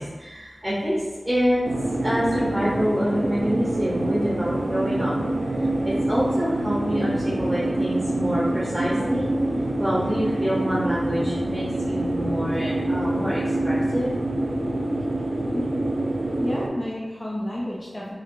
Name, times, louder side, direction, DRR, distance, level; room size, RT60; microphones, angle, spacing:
voice 1, 0.0-1.6 2.0-5.1 5.6-9.3 9.8-14.1, equal, 5° right, -8 dB, 0.8 m, -26 dB
sound 1, 1.6-16.7, right 1 dB, 85° right, 0.3 m, -26 dB
voice 2, 16.4-18.1, left 1 dB, 40° left, -5 dB, 0.5 m, -30 dB
2.8 x 2.7 x 2.5 m, 1.2 s
wide cardioid pair, 60°, 0 cm